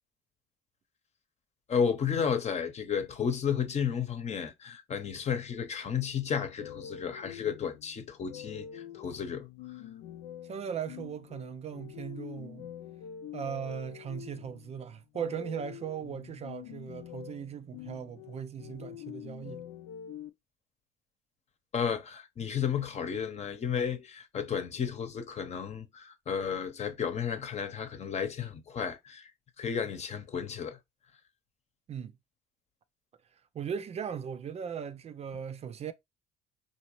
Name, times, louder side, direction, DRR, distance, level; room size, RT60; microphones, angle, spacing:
voice 1, 1.7-9.5 21.7-29.3 29.6-30.8, left 7 dB, 40° left, 0.9 m, -32 dB
sound 1, 6.6-20.3, left 10 dB, 75° left, 0.5 m, -46 dB
voice 2, 10.4-12.7 13.3-19.7 31.9-32.2 33.3-35.9, right 8 dB, 40° right, 0.4 m, -38 dB
3.9 x 2.9 x 3.0 m
supercardioid pair, 75°, 17 cm